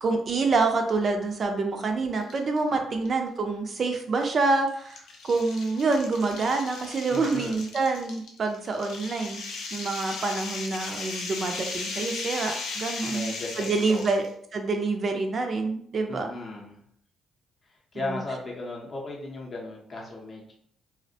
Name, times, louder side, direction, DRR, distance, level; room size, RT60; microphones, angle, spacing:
voice 1, 0.0-9.4 9.7-14.2 14.5-16.3 18.1-18.2, right 3 dB, 45° right, 4 dB, 0.4 m, -27 dB
sound 1, 2.2-2.6 3.0-3.1 4.1-14.3, left 4 dB, 80° left, 0.5 m, -37 dB
voice 2, 7.1-7.6 13.0-14.1 16.1-16.8 17.6-20.5, left 2 dB, 40° left, -2 dB, 0.6 m, -36 dB
2.4 x 2.1 x 2.7 m, 0.63 s
cardioid pair, 90°, 0 cm